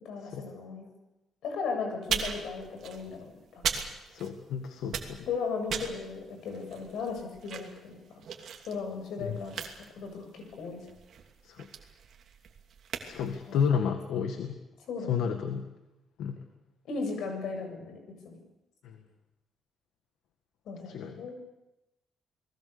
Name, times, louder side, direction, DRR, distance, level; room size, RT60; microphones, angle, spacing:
voice 1, 0.0-0.9 1.4-3.8 5.2-8.2 8.7-9.7 9.9-10.8 13.5-13.6 14.9-15.2 16.9-18.0 18.2-18.4 20.7-21.3, left 4 dB, 65° left, 4 dB, 7.7 m, -36 dB
sound 1, 2.0-4.5 4.8-13.7, right 7 dB, 50° right, 2.8 m, -38 dB
voice 2, 4.1-5.3 9.2-9.4 11.4-11.7 13.0-14.6 15.1-15.6 16.2-16.4 18.8-19.0 20.9-21.3, left 7 dB, 85° left, 6 dB, 1.9 m, -31 dB
30.0 x 20.5 x 7.0 m, 0.97 s
cardioid pair, 175°, 0 cm